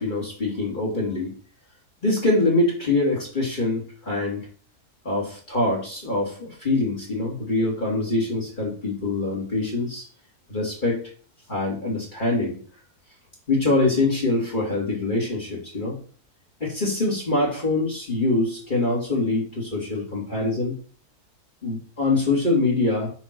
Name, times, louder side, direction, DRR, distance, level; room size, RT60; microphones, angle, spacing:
voice 1, 0.0-1.3 2.0-4.5 5.0-10.0 10.5-11.0 11.5-12.6 13.5-16.0 16.6-20.8 21.6-23.1, left 2 dB, 30° left, -2 dB, 2.4 m, -24 dB
7.2 x 3.8 x 5.9 m, 0.42 s
omnidirectional pair, 1.6 m